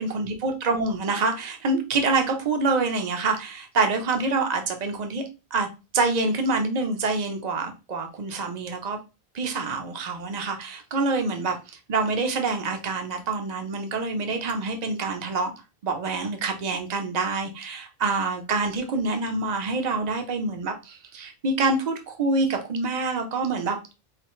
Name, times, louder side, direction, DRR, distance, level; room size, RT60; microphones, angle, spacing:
voice 1, 0.0-5.2 5.5-5.7 5.9-9.0 9.3-11.6 11.9-15.5 15.8-23.8, right 3 dB, 45° right, 5 dB, 0.8 m, -26 dB
4.9 x 2.7 x 3.1 m, 0.28 s
omnidirectional pair, 1.1 m